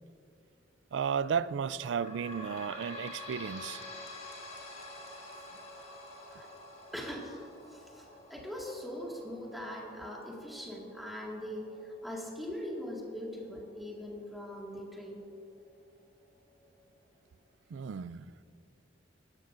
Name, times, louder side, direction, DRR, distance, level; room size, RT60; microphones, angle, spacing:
voice 1, 0.9-3.8 17.7-18.3, right 7 dB, 70° right, 0.3 m, -33 dB
sound 1, 1.6-14.7 15.3-15.4 15.7-15.8 16.6-16.7, left 2 dB, 35° left, 1.7 m, -49 dB
voice 2, 6.9-7.4 7.7-15.2, equal, ahead, 1.9 m, -41 dB
17.0 x 12.5 x 2.6 m
head